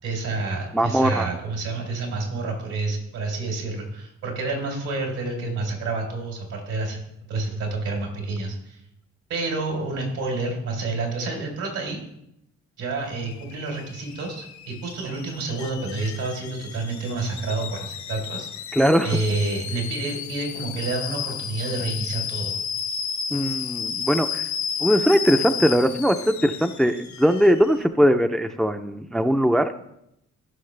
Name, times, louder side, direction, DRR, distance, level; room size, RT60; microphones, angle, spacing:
voice 1, 0.0-7.0 7.3-8.8 9.3-12.0 12.8-18.5 19.0-22.5, right 3 dB, 80° right, 1 dB, 3.8 m, -29 dB
voice 2, 0.7-1.3 18.7-19.2 23.3-24.4 24.8-29.7, equal, ahead, 8 dB, 0.5 m, -20 dB
Alarm / Boiling, 13.0-27.8, left 7 dB, 65° left, 1.1 m, -33 dB
15.5 x 6.3 x 3.3 m, 0.79 s
cardioid pair, 90°, 30 cm